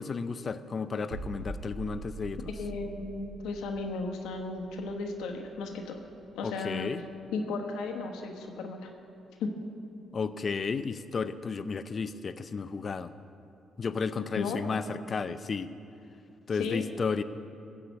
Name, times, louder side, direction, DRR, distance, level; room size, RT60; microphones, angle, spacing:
voice 1, 0.0-2.5 6.4-7.0 10.1-13.1 13.8-15.7 16.5-17.2, left 5 dB, 40° left, 12 dB, 0.5 m, -33 dB
sound 1, 1.1-6.8 7.1-7.3, right 2 dB, 55° right, 1.6 m, -44 dB
voice 2, 2.6-6.0 6.3-6.9 7.3-8.9 9.4-9.5 14.3-14.6 16.6-16.8, left 4 dB, 90° left, 3 dB, 1.2 m, -35 dB
15.0 x 5.0 x 8.2 m, 2.6 s
cardioid pair, 90°, 0 cm